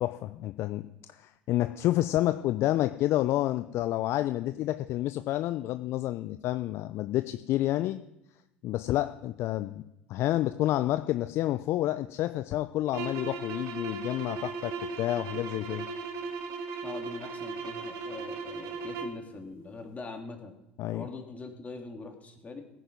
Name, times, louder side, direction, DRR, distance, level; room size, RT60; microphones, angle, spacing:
voice 1, 0.0-8.0 8.6-9.8 10.1-15.9 20.8-21.1, left 14 dB, 55° left, 11 dB, 0.6 m, -29 dB
sound 1, 12.9-19.2, right 4 dB, 60° right, 1.8 m, -37 dB
voice 2, 16.8-20.5 20.9-22.6, left 3 dB, 25° left, 3 dB, 3.0 m, -42 dB
16.5 x 9.3 x 5.4 m, 0.89 s
hypercardioid pair, 70°, 5 cm